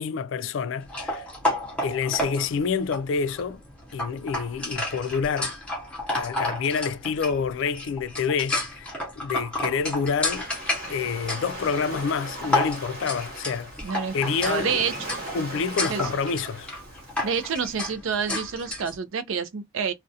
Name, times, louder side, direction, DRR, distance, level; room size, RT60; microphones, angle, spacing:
voice 1, 0.0-1.3 1.8-3.6 3.9-5.5 6.1-10.5 10.9-13.7 14.1-14.8 15.3-16.7, left 5 dB, 65° left, 0.3 m, -28 dB
sound 1, 0.9-19.0, left 2 dB, 5° left, 0.6 m, -32 dB
Waves surf, 9.5-17.8, right 1 dB, 45° right, 1.0 m, -39 dB
voice 2, 13.8-15.2 15.9-16.1 17.2-19.9, right 6 dB, 75° right, 0.5 m, -28 dB
2.4 x 2.1 x 2.6 m
head